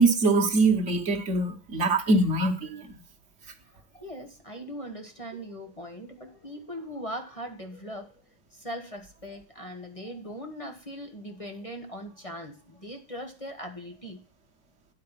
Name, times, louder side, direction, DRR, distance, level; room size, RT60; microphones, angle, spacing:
voice 1, 0.0-2.9, right 3 dB, 40° right, 1.3 m, -23 dB
voice 2, 3.6-8.2 8.5-14.2, equal, 20° left, 1.1 m, -40 dB
9.7 x 4.9 x 7.4 m
omnidirectional pair, 2.2 m